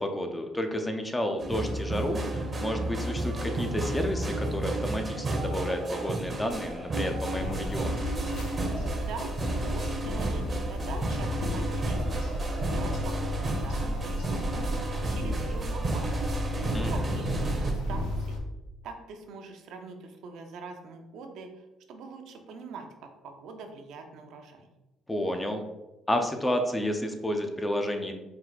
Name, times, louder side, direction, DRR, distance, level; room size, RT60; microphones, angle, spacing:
voice 1, 0.0-8.0 16.7-17.2 25.1-25.6 26.1-28.1, left 1 dB, 10° left, 5 dB, 0.4 m, -31 dB
sound 1, 1.4-17.7, right 2 dB, 25° right, 0.7 m, -32 dB
sound 2, 7.3-18.4, equal, 80° left, 0.8 m, -33 dB
voice 2, 8.9-9.3 9.6-14.7 15.1-16.4 16.8-18.4 18.8-24.7, right 4 dB, 70° right, 4 dB, 0.6 m, -43 dB
4.4 x 2.4 x 4.0 m, 1.0 s
cardioid pair, 140°, 0 cm